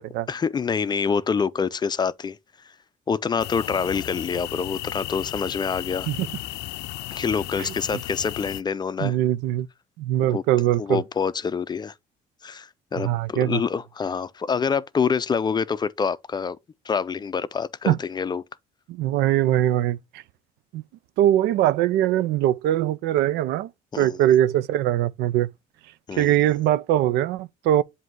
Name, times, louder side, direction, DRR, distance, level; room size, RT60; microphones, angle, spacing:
voice 1, 0.3-2.4 3.1-6.1 7.1-9.2 10.3-10.4 10.8-11.9 12.4-16.6 16.9-18.4 23.9-24.2 26.1-26.4, left 6 dB, 25° left, 0.4 m, -26 dB
sound 1, 3.4-8.6, left 16 dB, 80° left, 0.5 m, -34 dB
voice 2, 9.0-9.7 10.0-11.0 13.0-13.6 17.9-18.0 18.9-20.2 20.7-20.8 21.2-23.7 24.0-25.5 26.2-27.8, right 13 dB, 85° right, 0.5 m, -22 dB
7.7 x 2.7 x 4.5 m
cardioid pair, 110°, 17 cm